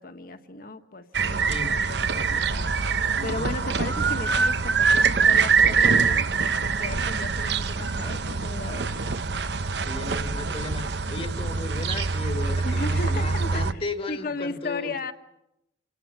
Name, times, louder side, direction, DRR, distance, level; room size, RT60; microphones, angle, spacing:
voice 1, 0.0-6.3 6.6-9.1 12.6-13.8 14.1-15.1, left 2 dB, 50° left, 8 dB, 1.5 m, -36 dB
sound 1, 1.1-13.7, right 5 dB, 65° right, 0.9 m, -24 dB
voice 2, 1.4-1.8 3.2-3.5 9.8-14.9, left 3 dB, 30° left, 6 dB, 1.6 m, -35 dB
28.0 x 18.5 x 8.2 m, 0.85 s
head